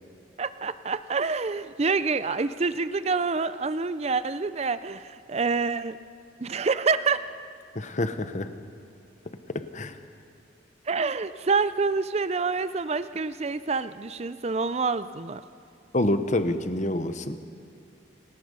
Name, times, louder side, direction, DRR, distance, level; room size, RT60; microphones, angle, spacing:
voice 1, 0.4-6.0 6.4-7.2 10.9-15.4, right 4 dB, 35° right, 13 dB, 0.5 m, -27 dB
voice 2, 7.7-8.5 9.7-10.0 15.9-17.4, left 1 dB, 40° left, 9 dB, 1.0 m, -27 dB
27.0 x 18.5 x 5.5 m, 2.4 s
head